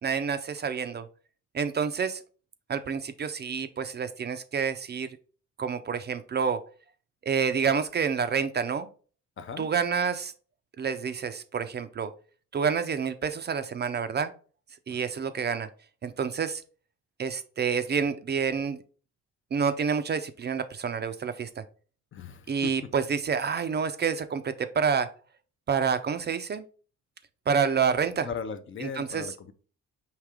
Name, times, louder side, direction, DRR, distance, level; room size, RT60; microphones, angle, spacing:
voice 1, 0.0-1.1 1.5-2.2 2.7-5.1 5.6-6.6 7.2-8.9 9.6-10.3 10.8-12.1 12.5-14.3 14.9-15.7 16.0-16.6 17.2-18.8 19.5-21.6 22.5-25.1 25.7-26.6 27.5-28.3 28.8-29.3, right 6 dB, 35° right, 0.4 m, -28 dB
voice 2, 9.4-9.7 14.9-15.0 22.1-22.7 28.2-29.5, left 6 dB, 40° left, 0.6 m, -38 dB
4.9 x 2.8 x 3.5 m
cardioid pair, 90°, 30 cm